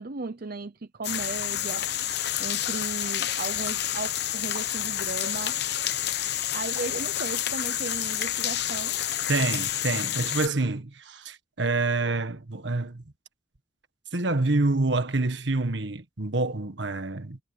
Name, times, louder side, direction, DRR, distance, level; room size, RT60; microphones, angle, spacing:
voice 1, 0.0-5.6 6.5-9.0, right 3 dB, 50° right, 0.7 m, -36 dB
sound 1, 1.0-10.5, left 12 dB, 60° left, 1.0 m, -29 dB
voice 2, 9.3-13.0 14.1-17.4, right 3 dB, 70° right, 1.5 m, -27 dB
head